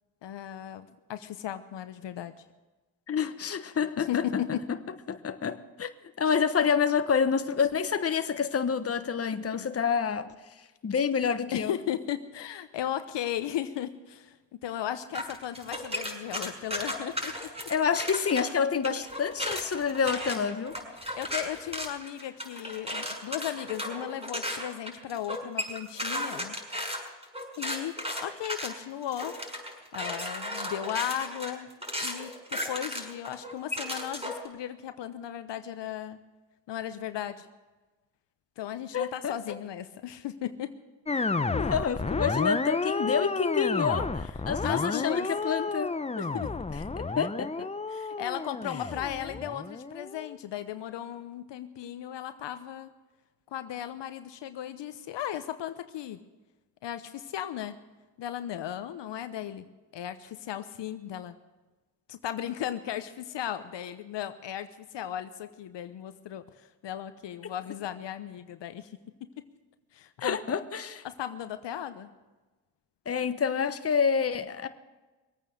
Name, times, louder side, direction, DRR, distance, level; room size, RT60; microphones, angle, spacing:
voice 1, 0.2-2.3 4.0-4.7 11.5-17.5 21.1-26.6 27.6-27.9 28.2-29.3 29.9-31.7 32.0-36.2 36.7-37.5 38.6-40.7 44.6-45.3 46.2-46.5 47.9-52.9 53.5-56.2 56.8-57.8 58.2-59.7 59.9-61.4 62.1-68.9 69.2-69.4 69.9-70.4 71.0-72.1, left 11 dB, 60° left, 11 dB, 1.0 m, -36 dB
voice 2, 3.1-4.4 5.1-5.9 6.2-10.3 10.8-11.7 17.7-20.8 38.9-39.3 41.5-45.9 46.7-47.7 70.2-71.0 73.1-74.7, left 6 dB, 30° left, 10 dB, 1.1 m, -28 dB
sound 1, 15.1-18.4 18.8-34.5, equal, 15° right, 6.0 m, -35 dB
sound 2, 41.1-50.4, left 3 dB, 15° left, 0.7 m, -31 dB
22.5 x 8.9 x 6.5 m, 1.2 s
supercardioid pair, 60°, 47 cm